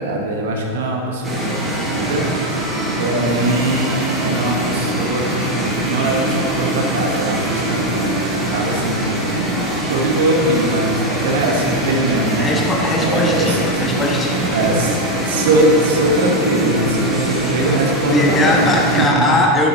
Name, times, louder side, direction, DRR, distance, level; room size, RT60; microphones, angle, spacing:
voice 1, 0.0-2.7 3.0-9.6 9.9-12.5 13.0-13.8 14.5-18.6 18.9-19.3, right 2 dB, 55° right, 1 dB, 1.4 m, -21 dB
sound 1, 1.2-19.0, right 1 dB, 10° right, 2.5 m, -22 dB
voice 2, 12.4-14.6 18.1-19.7, left 1 dB, 15° left, 0 dB, 1.3 m, -19 dB
11.5 x 10.0 x 3.2 m, 2.8 s
figure-of-eight pair, 90°, 0 cm